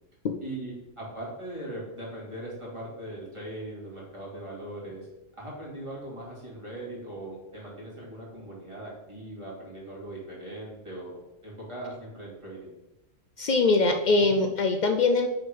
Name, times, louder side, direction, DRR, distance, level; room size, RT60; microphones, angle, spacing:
voice 1, 0.4-5.1 5.4-12.7 14.2-14.4, right 1 dB, 20° right, -6 dB, 2.4 m, -40 dB
voice 2, 13.4-15.3, left 3 dB, 90° left, 6 dB, 0.4 m, -22 dB
6.4 x 3.6 x 5.3 m, 0.97 s
omnidirectional pair, 1.3 m